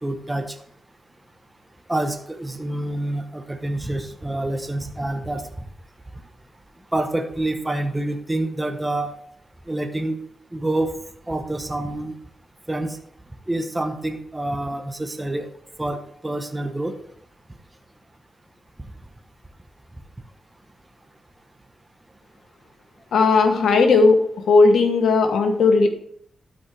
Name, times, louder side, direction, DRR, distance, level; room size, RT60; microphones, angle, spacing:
voice 1, 0.0-0.6 1.9-5.5 6.9-9.1 9.7-10.2 10.5-11.0 11.3-12.2 12.7-13.0 13.5-15.5 15.8-17.0, right 1 dB, 15° right, 6 dB, 1.0 m, -27 dB
voice 2, 23.1-24.2 24.5-25.9, left 4 dB, 80° left, 6 dB, 1.2 m, -16 dB
12.0 x 5.2 x 3.4 m, 0.66 s
cardioid pair, 65°, 0 cm